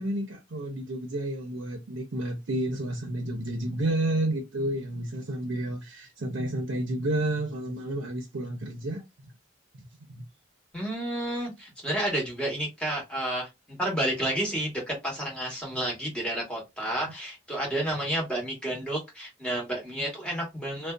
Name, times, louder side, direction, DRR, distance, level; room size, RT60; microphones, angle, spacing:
voice 1, 0.0-9.0 10.1-10.2, right 1 dB, 90° right, 0.7 m, -30 dB
voice 2, 10.7-20.9, right 1 dB, 5° left, 1.1 m, -31 dB
2.5 x 2.3 x 2.2 m
head